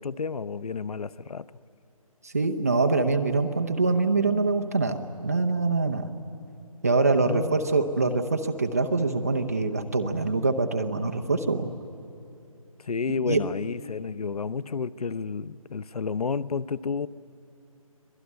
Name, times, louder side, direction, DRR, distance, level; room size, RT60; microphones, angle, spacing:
voice 1, 0.0-1.5 7.2-7.6 12.8-17.1, left 5 dB, 85° left, 18 dB, 0.7 m, -31 dB
voice 2, 2.2-6.1 6.8-11.7 13.3-13.5, right 3 dB, 25° right, 5 dB, 0.8 m, -24 dB
25.0 x 18.0 x 9.6 m, 2.7 s
hypercardioid pair, 180°, 19 cm